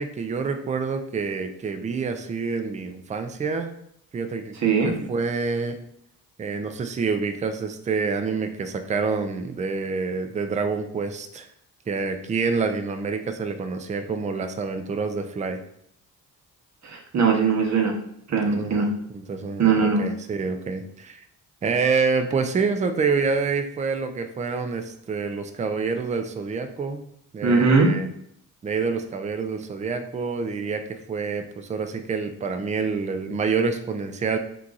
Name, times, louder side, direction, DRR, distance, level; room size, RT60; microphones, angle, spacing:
voice 1, 0.0-3.7 4.1-5.8 6.4-11.5 11.9-15.6 18.4-21.2 21.6-27.0 27.3-28.1 28.6-34.4, right 4 dB, 20° right, 7 dB, 0.4 m, -27 dB
voice 2, 4.6-4.9 16.8-17.9 18.3-18.9 19.6-20.1 27.4-27.9, right 5 dB, 50° right, 1 dB, 0.8 m, -20 dB
2.9 x 2.4 x 3.8 m, 0.71 s
cardioid pair, 80°, 36 cm